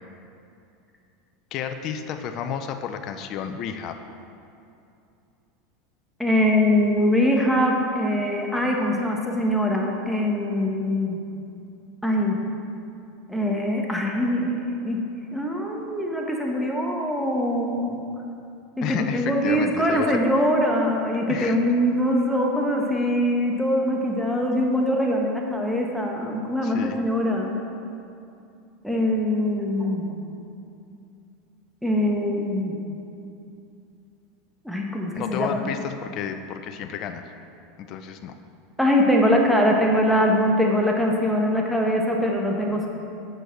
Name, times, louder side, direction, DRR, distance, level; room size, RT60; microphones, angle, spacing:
voice 1, 1.5-4.0 18.8-20.2 21.3-21.6 26.6-27.0 35.1-37.2 37.9-38.4, left 8 dB, 50° left, 7 dB, 0.6 m, -31 dB
voice 2, 6.2-11.2 12.0-12.4 13.3-18.0 18.8-27.6 28.8-30.1 31.8-32.8 34.6-35.7 38.8-42.9, equal, ahead, -1 dB, 1.3 m, -23 dB
7.9 x 6.5 x 6.1 m, 2.6 s
supercardioid pair, 120°, 0 cm